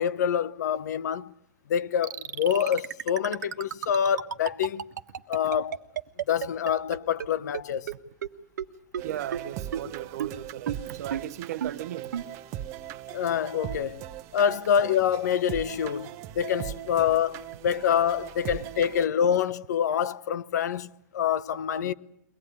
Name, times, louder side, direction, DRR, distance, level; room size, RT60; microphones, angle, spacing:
voice 1, 0.0-1.3 1.7-4.8 5.3-5.8 6.3-7.9 13.1-14.0 14.3-21.9, left 8 dB, 75° left, 1.0 m, -26 dB
sound 1, 2.0-7.3 7.5-7.6 7.9-8.0 8.2-8.3 8.6-8.7 8.9-9.0 9.3-9.4 9.7-9.8 10.2-10.3 10.7-10.8 11.1-11.2 11.6-11.7 12.1-12.2, right 9 dB, 85° right, 1.4 m, -31 dB
sound 2, 9.0-19.1, right 12 dB, 30° right, 1.1 m, -40 dB
voice 2, 9.0-12.1 21.8-21.9, right 12 dB, 65° right, 0.9 m, -36 dB
23.0 x 18.5 x 9.7 m
hypercardioid pair, 150°, 9 cm